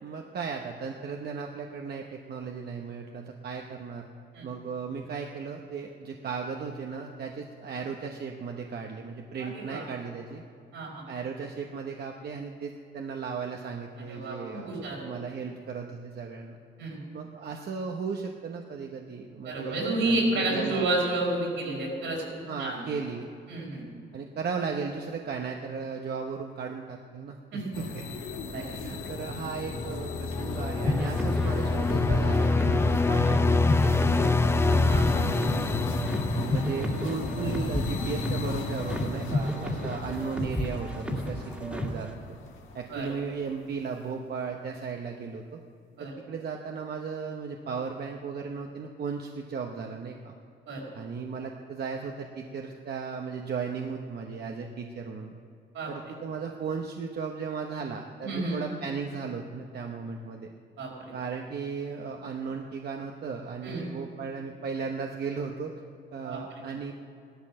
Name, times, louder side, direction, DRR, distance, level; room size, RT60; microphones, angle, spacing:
voice 1, 0.0-4.1 4.4-10.4 11.1-16.6 17.1-20.8 22.5-23.3 24.1-28.0 28.6-34.6 35.1-36.0 36.4-42.4 42.7-45.6 46.0-50.3 50.9-55.4 55.9-60.5 61.1-65.7 66.1-66.9, right 5 dB, 55° right, 2 dB, 1.0 m, -36 dB
voice 2, 9.4-9.9 10.7-11.1 14.1-15.0 16.8-17.0 19.5-22.3 22.6-22.8 23.5-23.8 27.5-27.9 28.5-28.7 34.9-35.1 42.9-43.1 46.0-46.1 50.7-50.8 55.7-55.9 58.2-58.6 60.8-61.1 63.6-63.8 66.2-66.4, right 2 dB, 80° right, -2 dB, 5.1 m, -30 dB
sound 1, 27.7-43.0, left 3 dB, 80° left, 1.5 m, -35 dB
sound 2, 29.7-37.1, left 3 dB, 15° left, 0.4 m, -26 dB
sound 3, 30.8-42.1, left 1 dB, 5° right, 2.0 m, -32 dB
16.0 x 13.0 x 6.4 m, 2.4 s
cardioid pair, 90°, 20 cm